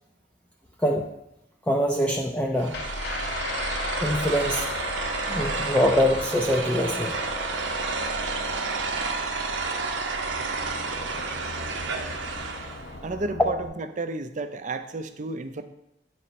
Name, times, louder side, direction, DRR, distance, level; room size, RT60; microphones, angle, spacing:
voice 1, 0.8-1.1 1.7-2.8 4.0-4.7 5.3-7.2, equal, 10° left, 0 dB, 0.4 m, -24 dB
sound 1, 2.6-12.9, right 4 dB, 85° right, 0.8 m, -31 dB
sound 2, 2.7-13.7, left 3 dB, 60° left, 0.7 m, -36 dB
voice 2, 13.0-15.6, right 3 dB, 40° right, 9 dB, 0.5 m, -32 dB
9.8 x 4.2 x 4.2 m, 0.84 s
head